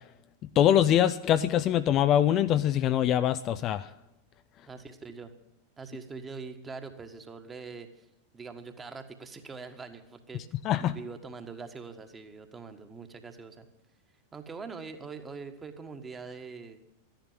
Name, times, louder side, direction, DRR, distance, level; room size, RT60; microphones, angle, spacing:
voice 1, 0.6-3.9 10.6-10.9, left 11 dB, 35° left, 12 dB, 0.5 m, -23 dB
voice 2, 4.7-5.3 5.8-8.1 8.3-13.6 14.3-16.9, right 4 dB, 15° right, 7 dB, 1.6 m, -43 dB
13.5 x 10.5 x 7.4 m, 0.85 s
figure-of-eight pair, 90°, 0 cm